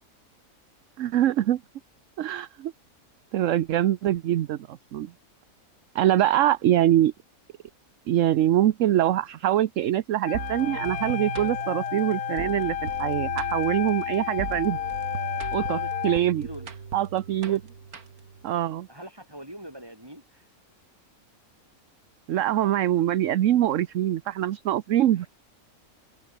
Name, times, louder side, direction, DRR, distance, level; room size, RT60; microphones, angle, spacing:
voice 1, 1.0-1.6 2.2-2.7 3.3-5.1 5.9-7.1 8.1-14.8 15.5-16.5 16.9-17.6 18.4-18.9 22.3-25.3, right 12 dB, 65° right, 1.0 m, -24 dB
Wind instrument woodwind instrument, 10.2-16.2, left 12 dB, 70° left, 0.6 m, -31 dB
sound 1, 10.3-18.4, right 6 dB, 85° right, 2.4 m, -38 dB
voice 2, 15.7-16.7 17.5-17.6 18.9-20.5 25.2-25.3, right 1 dB, 15° right, 7.0 m, -42 dB
omnidirectional pair, 1.5 m